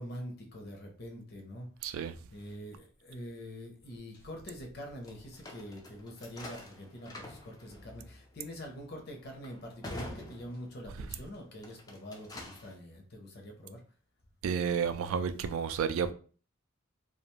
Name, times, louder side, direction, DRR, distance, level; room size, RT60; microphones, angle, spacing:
voice 1, 0.0-1.7 2.3-13.8, equal, 50° left, 0.6 m, -45 dB
voice 2, 1.8-2.2 14.4-16.1, right 7 dB, 80° right, 0.3 m, -31 dB
sound 1, 5.0-11.1 11.5-12.8, left 1 dB, 20° left, 0.3 m, -47 dB
2.4 x 2.2 x 3.0 m
head